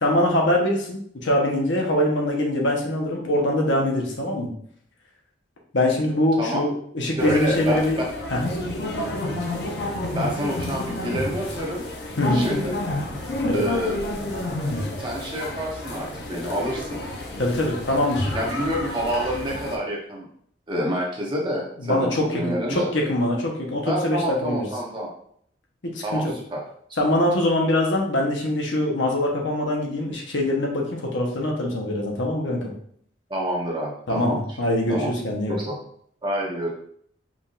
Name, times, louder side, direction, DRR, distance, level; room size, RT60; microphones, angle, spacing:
voice 1, 0.0-4.5 5.7-8.0 8.3-8.4 12.2-12.5 13.5-13.7 17.4-18.3 21.8-24.6 25.9-26.3 27.0-32.7 34.1-35.6, left 1 dB, 75° left, -1 dB, 1.1 m, -23 dB
sound 1, 7.2-19.8, left 1 dB, 55° left, 0.7 m, -30 dB
voice 2, 7.2-7.8 10.1-11.8 12.3-12.7 13.5-14.0 15.0-17.0 18.3-20.3 20.7-22.9 23.8-25.1 26.0-26.6 26.9-27.0 33.3-34.4 34.9-35.1 35.6-35.8 36.2-36.7, equal, 25° right, -3 dB, 1.0 m, -27 dB
5.1 x 3.5 x 2.5 m, 0.64 s
head